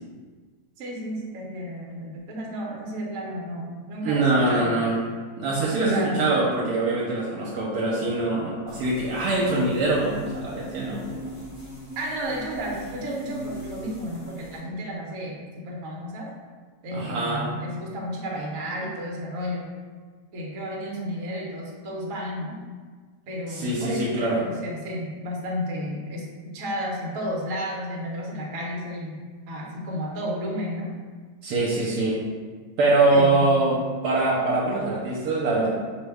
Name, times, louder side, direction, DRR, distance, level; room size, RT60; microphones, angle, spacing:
voice 1, 0.8-4.8 5.8-6.3 12.0-16.3 16.8-19.7 20.3-22.6 23.3-29.2 29.5-30.9 33.1-33.5, equal, 60° right, -2 dB, 1.0 m, -32 dB
voice 2, 4.0-4.9 5.4-11.3 16.9-17.5 23.5-24.4 31.4-32.2 32.8-35.7, right 2 dB, 80° right, -5 dB, 1.2 m, -23 dB
sound 1, 8.7-14.6, right 1 dB, 40° left, 1.7 m, -39 dB
5.0 x 2.2 x 3.4 m, 1.5 s
omnidirectional pair, 1.7 m